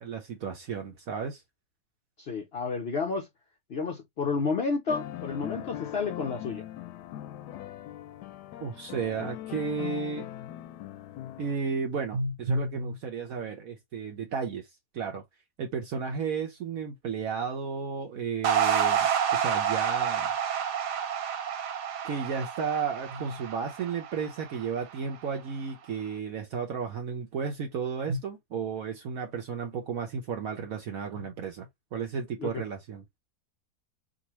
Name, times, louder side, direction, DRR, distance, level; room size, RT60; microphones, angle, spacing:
voice 1, 0.0-1.4 8.6-10.3 11.4-14.7 14.9-15.2 15.6-20.3 22.0-33.2, right 5 dB, 65° right, 1.1 m, -33 dB
voice 2, 2.2-3.3 3.7-6.7 32.4-32.6, left 4 dB, 65° left, 0.6 m, -31 dB
sound 1, 4.9-11.6, left 13 dB, 85° left, 1.1 m, -40 dB
sound 2, 18.4-24.9, right 8 dB, 85° right, 1.4 m, -29 dB
5.1 x 2.4 x 2.9 m
omnidirectional pair, 1.7 m